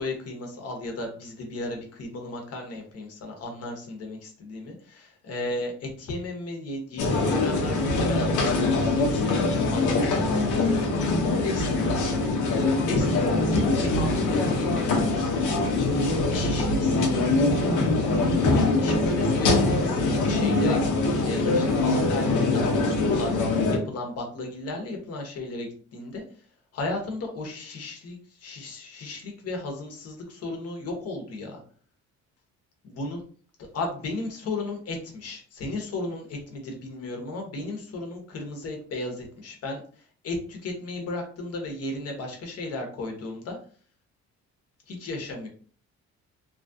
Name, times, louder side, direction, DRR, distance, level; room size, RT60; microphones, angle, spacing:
voice 1, 0.0-15.2 16.0-26.2 26.7-31.6 32.8-33.2 33.6-39.8 40.2-43.6 44.9-45.5, left 2 dB, 55° left, 2 dB, 1.0 m, -35 dB
sound 1, 7.0-23.8, left 2 dB, 90° left, 0.8 m, -23 dB
2.9 x 2.4 x 2.7 m, 0.44 s
cardioid pair, 125°, 29 cm